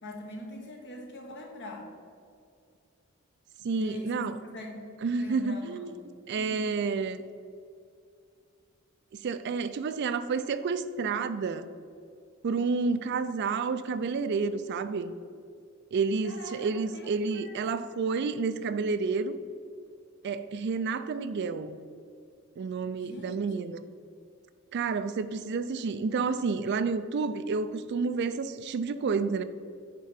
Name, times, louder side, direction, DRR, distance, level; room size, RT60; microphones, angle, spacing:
voice 1, 0.0-1.9 3.7-4.3 4.5-4.9 5.1-6.1 6.4-6.7 16.2-17.9 23.0-23.8, left 1 dB, 55° left, 1.3 m, -43 dB
voice 2, 3.6-4.4 5.0-5.9 6.3-7.2 9.1-11.7 12.4-15.1 15.9-19.4 20.2-21.8 22.6-23.8 24.7-29.4, right 4 dB, 55° right, 0.3 m, -30 dB
8.7 x 3.7 x 5.7 m
head